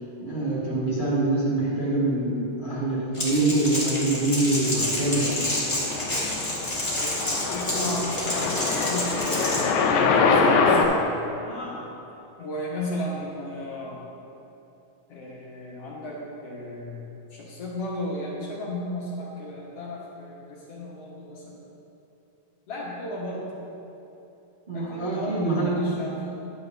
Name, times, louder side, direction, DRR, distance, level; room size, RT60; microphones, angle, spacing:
voice 1, 0.2-5.5 24.7-26.3, right 2 dB, 25° right, -10 dB, 1.0 m, -25 dB
Crackle, 3.1-9.6, left 1 dB, 15° left, 1.1 m, -29 dB
sound 1, 4.7-10.9, left 4 dB, 80° left, 2.1 m, -24 dB
voice 2, 6.8-11.9 12.4-14.1 15.1-21.6 22.7-23.6 24.7-26.3, left 1 dB, 60° left, -6 dB, 2.2 m, -35 dB
11.5 x 8.3 x 2.7 m, 3.0 s
omnidirectional pair, 3.5 m